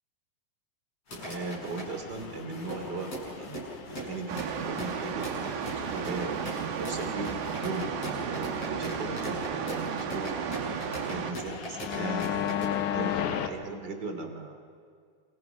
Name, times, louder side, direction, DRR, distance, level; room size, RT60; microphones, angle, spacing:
sound 1, 1.1-13.5, left 10 dB, 80° left, 1.7 m, -38 dB
sound 2, 1.1-12.6, right 1 dB, 30° left, 8.6 m, -40 dB
voice 1, 1.1-6.4 6.8-7.3 7.6-10.6 11.1-14.8, right 3 dB, 30° right, 4 dB, 2.5 m, -38 dB
sound 3, 4.3-11.3, right 7 dB, 75° right, 3.6 m, -34 dB
28.5 x 28.5 x 5.9 m, 2.2 s
omnidirectional pair, 5.1 m